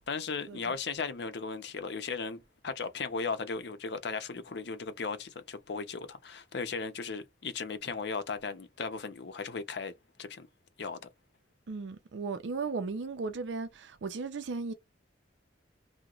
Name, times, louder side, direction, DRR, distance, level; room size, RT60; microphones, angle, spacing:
voice 1, 0.1-9.9 10.2-10.5 10.8-11.1, left 4 dB, 65° left, 0.6 m, -36 dB
voice 2, 11.7-14.7, right 4 dB, 80° right, 0.5 m, -36 dB
2.9 x 2.1 x 3.7 m
head